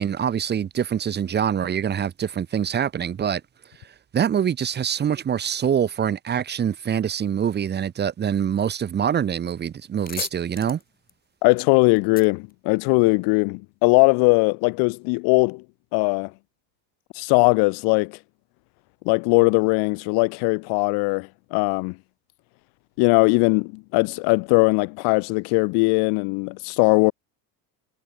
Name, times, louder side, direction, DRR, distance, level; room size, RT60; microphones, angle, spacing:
voice 1, 0.0-3.4 4.1-10.8, right 8 dB, 25° right, 1.9 m, -24 dB
sound 1, 9.3-9.5 9.8-13.4, left 7 dB, 25° left, 3.2 m, -39 dB
voice 2, 11.4-15.6 15.9-16.3 17.2-18.2 19.1-21.9 23.0-27.1, left 32 dB, 80° left, 0.8 m, -20 dB
cardioid pair, 165°, 38 cm